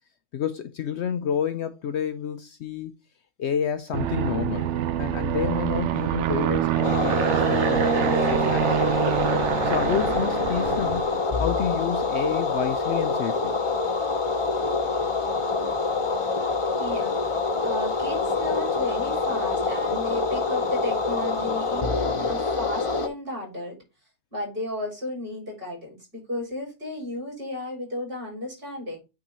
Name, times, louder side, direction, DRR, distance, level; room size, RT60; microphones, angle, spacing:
voice 1, 0.3-2.9 3.4-4.7 5.0-8.9 9.6-11.1 11.4-13.5 22.0-22.3, left 8 dB, 65° left, 0.8 m, -29 dB
Aircraft, 3.9-11.3, right 11 dB, 65° right, 0.9 m, -25 dB
sound 1, 6.8-23.1, left 4 dB, 25° left, 0.8 m, -26 dB
voice 2, 16.8-17.2 17.6-23.8 24.3-29.0, left 1 dB, 40° right, 5.4 m, -33 dB
8.9 x 3.8 x 4.1 m
omnidirectional pair, 1.4 m